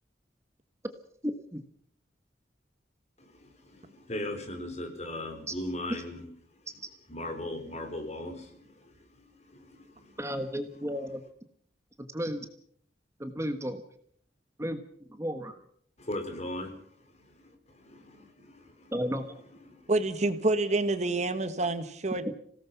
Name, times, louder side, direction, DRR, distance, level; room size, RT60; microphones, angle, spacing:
voice 1, 1.2-1.6 5.5-5.6 10.2-11.2 12.0-12.5 13.2-13.8 14.6-14.8 15.1-15.6 18.9-19.3 22.3-22.4, equal, 15° right, 7 dB, 1.3 m, -33 dB
voice 2, 3.2-6.6 7.1-10.4 16.0-18.9 19.7-19.9, left 1 dB, 40° left, 5 dB, 4.2 m, -39 dB
voice 3, 19.9-22.3, right 2 dB, 40° right, 10 dB, 1.4 m, -28 dB
26.5 x 18.0 x 5.8 m, 0.62 s
head